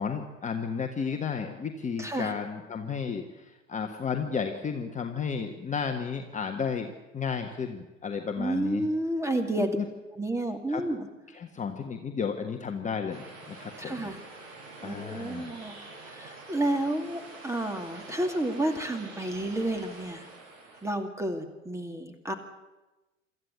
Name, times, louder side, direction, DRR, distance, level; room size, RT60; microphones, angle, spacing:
voice 1, 0.0-8.8 9.6-9.8 10.7-10.8 11.3-14.1 14.8-15.6, left 6 dB, 20° left, 4 dB, 1.4 m, -33 dB
voice 2, 2.0-2.3 8.4-9.8 10.2-11.1 13.8-14.2 14.8-20.3 20.8-22.3, right 1 dB, 5° right, 6 dB, 2.5 m, -31 dB
sound 1, 13.1-20.9, right 2 dB, 55° right, 7.4 m, -46 dB
25.5 x 13.5 x 8.5 m, 1.1 s
figure-of-eight pair, 85°, 39 cm